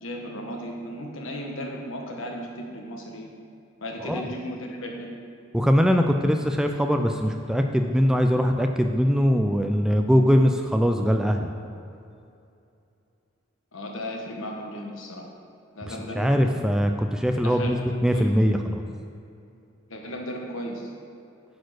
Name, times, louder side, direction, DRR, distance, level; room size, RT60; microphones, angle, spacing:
voice 1, 0.0-3.3 3.8-5.1 13.7-15.3 15.7-16.6 17.4-18.3 19.9-20.9, equal, 80° left, 1 dB, 1.3 m, -35 dB
voice 2, 5.5-11.5 15.9-18.8, equal, 5° right, 4 dB, 0.3 m, -22 dB
9.4 x 4.5 x 6.1 m, 2.6 s
head